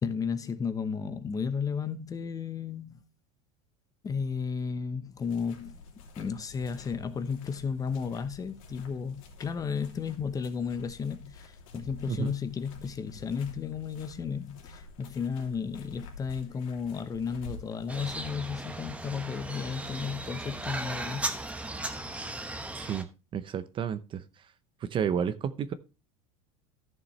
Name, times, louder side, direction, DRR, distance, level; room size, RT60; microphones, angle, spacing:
voice 1, 0.0-3.0 4.0-5.8 6.2-21.2, left 6 dB, 20° left, 0.9 m, -33 dB
sound 1, 5.2-18.3, left 3 dB, 90° left, 3.0 m, -49 dB
sound 2, 17.9-23.0, right 2 dB, 5° right, 1.0 m, -37 dB
voice 2, 22.7-23.1 23.3-24.2 24.9-25.7, right 8 dB, 30° right, 0.7 m, -31 dB
14.0 x 7.0 x 3.2 m
supercardioid pair, 140°, 17 cm